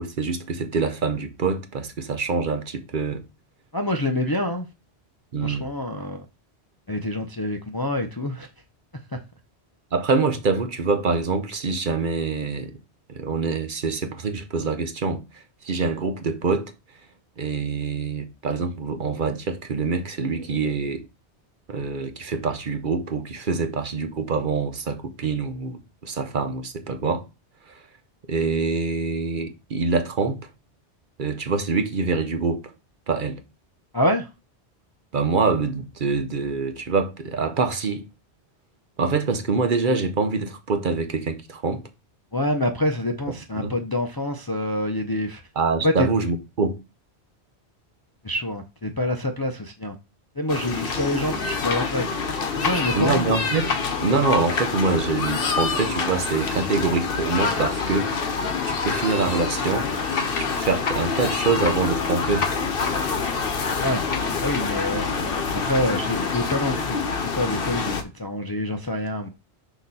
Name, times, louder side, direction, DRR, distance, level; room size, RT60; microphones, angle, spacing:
voice 1, 0.0-3.2 5.3-5.7 9.9-12.7 13.1-15.2 15.6-16.6 17.4-21.0 21.7-27.2 27.7-27.8 28.3-30.4 31.2-32.7 33.1-33.4 35.1-38.0 39.0-41.8 43.6-43.7 45.6-46.8 52.9-53.7 54.0-58.1 58.6-59.9 60.4-62.5, right 4 dB, 50° right, 0.9 m, -25 dB
voice 2, 3.7-4.7 5.4-6.3 6.9-8.5 33.9-34.3 42.3-45.4 45.8-46.1 48.2-49.9 50.4-52.2 52.6-53.4 63.8-64.0 64.4-65.0 65.5-67.0 67.4-69.3, left 1 dB, 25° left, 0.5 m, -26 dB
sound 1, 50.5-68.0, left 5 dB, 60° left, 1.0 m, -26 dB
6.4 x 3.0 x 5.4 m
omnidirectional pair, 1.1 m